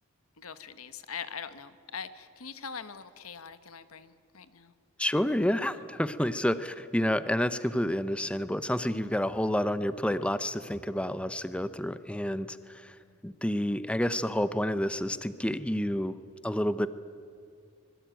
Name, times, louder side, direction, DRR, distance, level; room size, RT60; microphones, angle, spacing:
voice 1, 0.4-4.7 5.7-5.9 13.0-13.2, left 6 dB, 90° left, 12 dB, 1.3 m, -42 dB
voice 2, 5.0-13.0 13.2-16.1 16.4-16.9, left 1 dB, 5° left, 13 dB, 0.7 m, -29 dB
25.0 x 22.0 x 9.1 m, 2.3 s
head